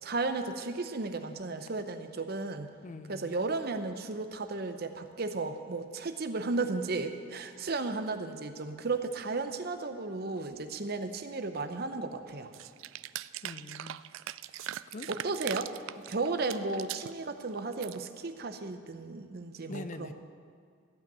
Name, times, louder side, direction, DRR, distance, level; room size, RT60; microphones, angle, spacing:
voice 1, 0.0-2.7 3.1-12.5 15.1-20.1, right 3 dB, 50° right, 8 dB, 0.8 m, -34 dB
voice 2, 2.8-3.4 13.4-14.0 14.5-15.1 19.7-20.1, left 2 dB, 40° left, 11 dB, 0.5 m, -44 dB
sound 1, 12.5-17.1 17.5-18.0, right 13 dB, 80° right, 0.3 m, -41 dB
15.0 x 5.8 x 9.0 m, 2.2 s
head